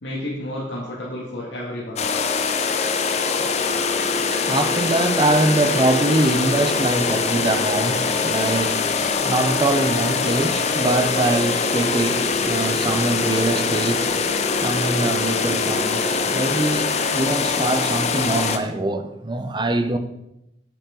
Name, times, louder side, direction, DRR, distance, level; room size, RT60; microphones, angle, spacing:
voice 1, 0.0-2.1, left 1 dB, 85° left, 2.0 m, -31 dB
sound 1, 2.0-18.6, left 4 dB, 40° left, 0.6 m, -23 dB
voice 2, 3.4-20.0, right 2 dB, 25° right, 0.7 m, -23 dB
8.7 x 8.5 x 3.8 m
head